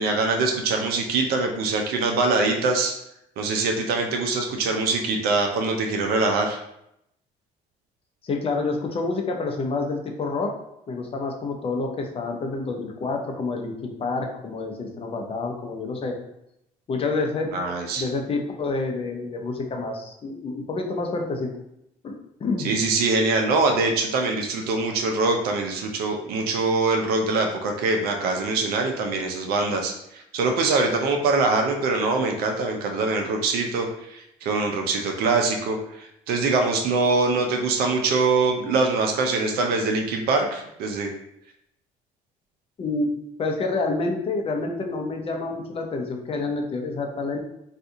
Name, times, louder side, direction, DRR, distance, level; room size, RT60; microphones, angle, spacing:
voice 1, 0.0-2.9 3.4-6.6 17.5-18.1 22.6-41.1, right 3 dB, 75° right, 3 dB, 0.5 m, -23 dB
voice 2, 8.2-10.5 10.9-16.1 16.9-17.5 18.0-21.5 22.0-22.1 22.4-22.7 42.8-47.4, left 3 dB, 35° left, 2 dB, 0.6 m, -28 dB
2.7 x 2.4 x 3.6 m, 0.79 s
cardioid pair, 95°, 16 cm